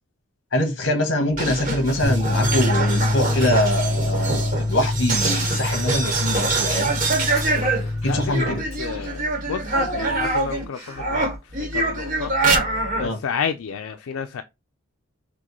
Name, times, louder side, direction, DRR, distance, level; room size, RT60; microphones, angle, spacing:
voice 1, 0.5-6.9 8.0-8.6 13.0-13.2, left 1 dB, 60° left, 1.2 m, -23 dB
sound 1, 1.3-10.6 11.0-13.1, right 3 dB, 35° right, 1.1 m, -25 dB
sound 2, 2.0-8.3, left 2 dB, 5° right, 0.6 m, -25 dB
Child speech kid speaking / Bathtub (filling or washing), 5.7-6.6 7.0-11.2, right 2 dB, 30° left, 2.9 m, -37 dB
voice 2, 7.8-14.4, left 7 dB, 85° left, 0.4 m, -32 dB
6.0 x 2.2 x 3.0 m
head